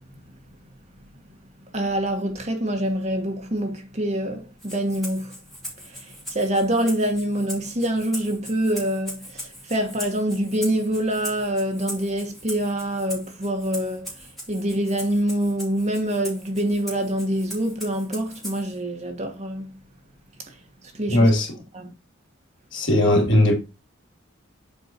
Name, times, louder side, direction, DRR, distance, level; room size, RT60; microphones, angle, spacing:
voice 1, 1.7-5.3 5.8-14.2 14.5-19.7 20.9-21.3 21.7-21.9, right 1 dB, 30° right, 1.4 m, -25 dB
Rattle (instrument), 4.6-18.8, equal, ahead, 2.9 m, -40 dB
voice 2, 21.1-21.5 22.7-23.6, left 1 dB, 60° left, 2.7 m, -18 dB
6.9 x 4.6 x 4.5 m
head